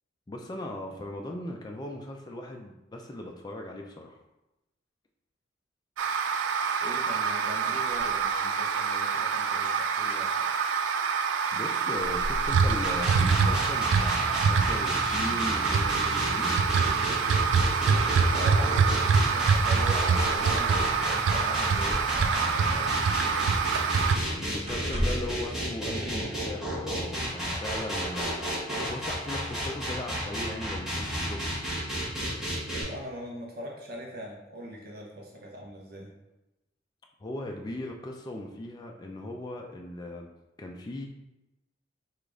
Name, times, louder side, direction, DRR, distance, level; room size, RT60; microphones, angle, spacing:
voice 1, 0.3-4.2 11.5-16.5 24.3-28.5 28.9-31.6 37.2-40.3 40.6-41.1, left 1 dB, 20° left, 1 dB, 0.3 m, -38 dB
sound 1, 6.0-24.2, right 5 dB, 70° right, 0.3 m, -25 dB
voice 2, 6.8-10.5 18.3-23.6 32.8-36.1, equal, 50° right, -1 dB, 0.7 m, -41 dB
sound 2, 12.8-32.8, equal, ahead, 1.0 m, -32 dB
sound 3, 21.6-23.6 24.0-24.3 24.6-25.4 26.5-26.6, equal, 30° right, 1.4 m, -35 dB
4.9 x 2.4 x 3.7 m, 0.95 s
head